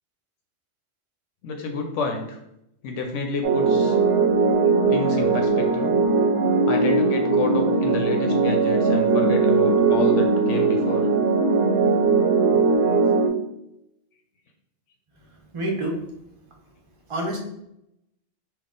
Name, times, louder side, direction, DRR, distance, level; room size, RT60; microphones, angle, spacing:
voice 1, 1.4-2.4 2.8-4.0 4.9-6.0 6.7-11.1, left 4 dB, 80° left, 3 dB, 0.9 m, -30 dB
sound 1, 3.4-13.3, right 4 dB, 65° right, 1.0 m, -20 dB
voice 2, 15.2-16.0 17.1-17.4, right 1 dB, 30° right, 0 dB, 0.8 m, -28 dB
3.9 x 2.4 x 3.7 m, 0.81 s
omnidirectional pair, 1.2 m